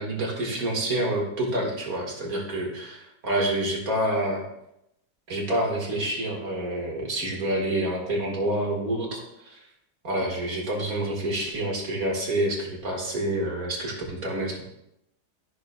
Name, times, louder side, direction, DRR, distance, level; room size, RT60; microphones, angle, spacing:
voice 1, 0.0-4.4 5.3-9.6 10.0-14.6, right 1 dB, 55° right, -1 dB, 2.3 m, -28 dB
14.0 x 6.5 x 2.3 m, 0.82 s
omnidirectional pair, 1.9 m